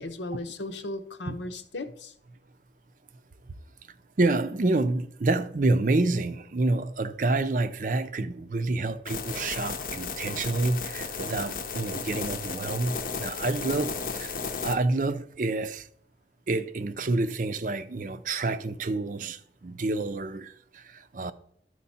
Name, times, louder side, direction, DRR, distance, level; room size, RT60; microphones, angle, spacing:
voice 1, 0.0-2.1, left 2 dB, 85° left, 0.9 m, -36 dB
voice 2, 4.2-14.3 14.6-15.9 16.5-21.3, right 2 dB, 45° right, 0.5 m, -28 dB
sound 1, 9.1-14.8, left 5 dB, 50° left, 0.7 m, -34 dB
12.0 x 4.6 x 4.2 m
head